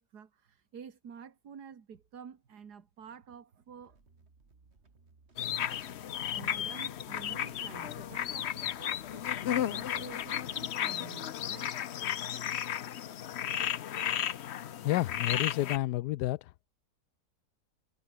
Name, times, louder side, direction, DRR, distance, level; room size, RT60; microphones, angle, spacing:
voice 1, 0.0-4.0 5.4-5.6 6.3-11.8, right 7 dB, 75° right, 2.3 m, -50 dB
sound 1, 3.7-10.7, right 3 dB, 40° right, 2.7 m, -63 dB
sound 2, 5.4-15.8, left 10 dB, 55° left, 0.8 m, -34 dB
voice 2, 14.8-16.5, left 16 dB, 85° left, 1.2 m, -30 dB
omnidirectional pair, 1.7 m